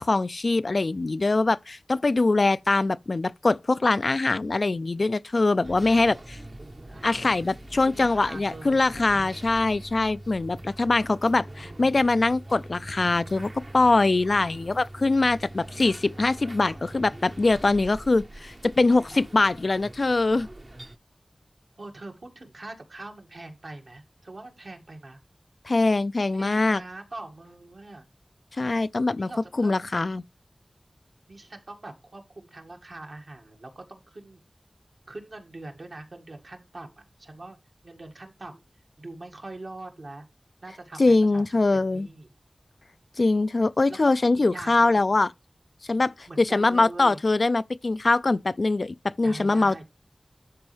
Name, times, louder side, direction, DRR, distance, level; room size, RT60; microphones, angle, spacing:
voice 1, 0.0-6.4 7.0-20.5 25.7-26.8 28.6-29.3 29.6-30.2 41.0-42.1 43.2-45.3 45.9-49.8, left 3 dB, 70° left, 0.4 m, -23 dB
sound 1, 5.6-21.0, right 1 dB, 45° right, 0.9 m, -43 dB
voice 2, 7.9-9.3 11.5-12.1 21.8-25.2 26.3-28.1 29.1-29.8 31.3-34.4 35.1-37.6 37.8-38.6 39.0-40.3 40.6-41.4 41.7-42.3 44.0-44.1 44.5-45.1 46.3-47.2 49.2-49.8, right 2 dB, 70° right, 2.0 m, -42 dB
12.0 x 4.4 x 3.3 m
wide cardioid pair, 50°, 0 cm